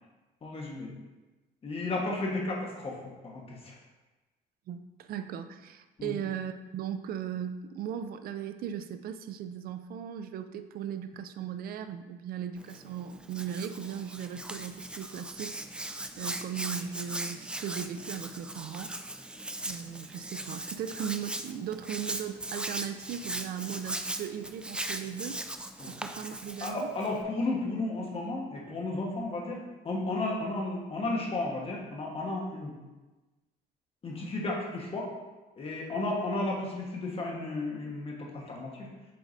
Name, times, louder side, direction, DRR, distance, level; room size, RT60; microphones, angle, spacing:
voice 1, 0.4-0.9 1.6-3.8 6.0-6.2 25.8-25.9 26.6-32.8 34.0-35.1 35.6-38.9, left 2 dB, 35° left, -2 dB, 1.4 m, -33 dB
voice 2, 4.7-15.6 16.2-19.0 19.7-25.4 25.9-26.9, right 9 dB, 60° right, 10 dB, 0.5 m, -37 dB
Hands, 12.6-27.2, right 1 dB, 5° right, 0.3 m, -39 dB
7.6 x 4.6 x 2.7 m, 1.1 s
cardioid pair, 110°, 17 cm